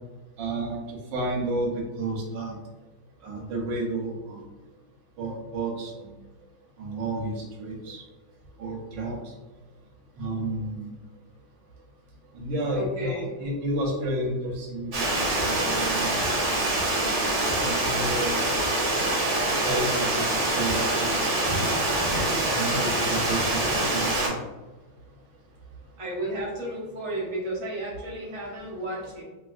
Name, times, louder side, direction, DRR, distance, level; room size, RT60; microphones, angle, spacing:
voice 1, 0.4-1.7 2.0-2.6 3.2-4.4 5.2-6.1 6.8-8.0 8.6-9.2 10.2-10.9 12.3-13.1 13.4-16.2 16.9-17.2 17.6-18.4 19.6-20.2 20.5-21.2 22.5-24.4, right 1 dB, 80° right, -1 dB, 1.4 m, -31 dB
voice 2, 12.7-13.3 20.2-20.3 26.0-29.2, right 1 dB, 35° right, -6 dB, 0.5 m, -33 dB
Water, 14.9-24.3, right 1 dB, 55° right, 1.4 m, -25 dB
3.3 x 2.6 x 2.4 m, 1.2 s
omnidirectional pair, 2.0 m